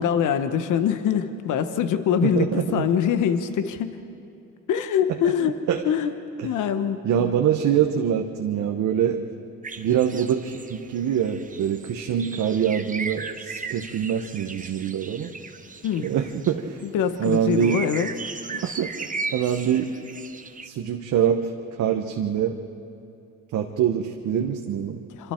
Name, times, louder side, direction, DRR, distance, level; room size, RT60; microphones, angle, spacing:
voice 1, 0.0-4.0 4.7-5.6 5.8-6.1 6.4-7.3 15.8-16.1 16.8-18.1 18.5-18.7 25.1-25.3, left 8 dB, 80° left, 10 dB, 1.1 m, -24 dB
voice 2, 2.2-2.9 5.4-5.8 6.4-6.5 7.0-9.2 9.8-15.3 16.0-16.8 17.2-17.8 18.6-19.9 20.6-21.5 21.8-22.6 23.5-25.0, right 9 dB, 75° right, 3 dB, 1.1 m, -24 dB
sound 1, 9.6-16.5 16.8-16.9 17.2-20.7, right 4 dB, 25° right, 1.1 m, -37 dB
26.5 x 25.0 x 4.5 m, 2.7 s
cardioid pair, 90°, 30 cm